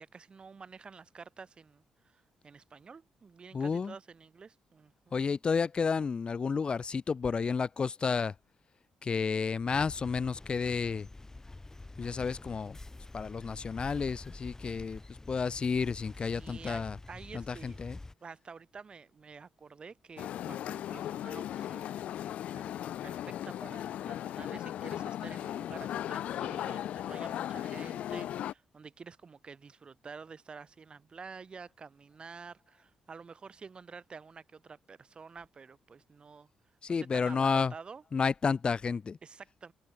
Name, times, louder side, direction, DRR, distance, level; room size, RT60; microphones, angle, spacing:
voice 1, 0.0-5.2 16.3-17.8 18.2-22.8 23.0-36.5 37.0-38.0 39.2-39.7, right 5 dB, 45° right, 6.2 m, -49 dB
voice 2, 3.5-3.9 5.1-8.3 9.0-11.1 12.0-12.8 13.1-15.0 15.3-17.0 17.3-18.0 36.8-37.7 38.1-39.2, left 5 dB, 45° left, 1.3 m, -31 dB
sound 1, 9.7-18.1, left 2 dB, 25° left, 4.9 m, -47 dB
sound 2, 20.2-28.5, left 11 dB, 70° left, 1.9 m, -37 dB
hypercardioid pair, 45°, 2 cm